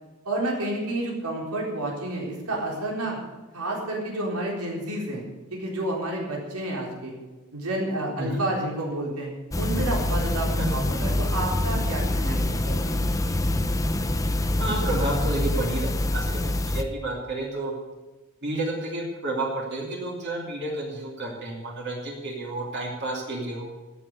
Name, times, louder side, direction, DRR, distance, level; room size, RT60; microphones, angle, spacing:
voice 1, 0.2-3.2 3.5-5.3 5.5-7.1 7.5-9.3 9.6-13.0, right 1 dB, 90° right, -2 dB, 4.1 m, -30 dB
sound 1, 9.5-16.8, left 1 dB, 15° left, 0.6 m, -25 dB
voice 2, 14.6-17.7 18.4-23.7, right 2 dB, 50° right, -2 dB, 2.8 m, -30 dB
14.0 x 7.7 x 8.1 m, 1.2 s
head